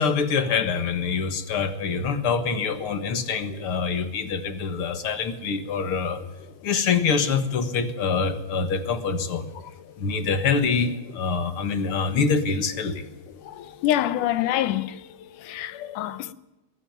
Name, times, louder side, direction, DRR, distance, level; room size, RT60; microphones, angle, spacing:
voice 1, 0.0-6.2 6.6-9.5 10.0-13.1, left 5 dB, 50° left, 2.0 m, -25 dB
voice 2, 13.4-15.1 15.4-16.3, left 13 dB, 75° left, 2.3 m, -26 dB
22.0 x 14.5 x 9.4 m
omnidirectional pair, 3.8 m